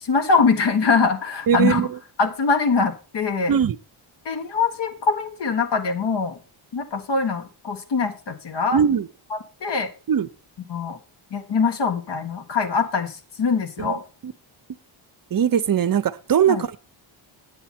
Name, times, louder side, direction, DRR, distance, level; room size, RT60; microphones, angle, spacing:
voice 1, 0.0-1.8 2.2-3.5 4.2-6.3 6.7-8.8 9.3-9.9 10.7-11.0 11.3-14.0 16.5-16.6, left 5 dB, 55° left, 6 dB, 1.6 m, -23 dB
voice 2, 1.5-2.0 3.5-3.8 8.7-9.1 10.1-10.3 13.8-13.9 14.2-14.3 15.3-16.8, right 8 dB, 45° right, 15 dB, 0.7 m, -20 dB
9.2 x 8.9 x 4.3 m, 0.33 s
wide cardioid pair, 130°, 50 cm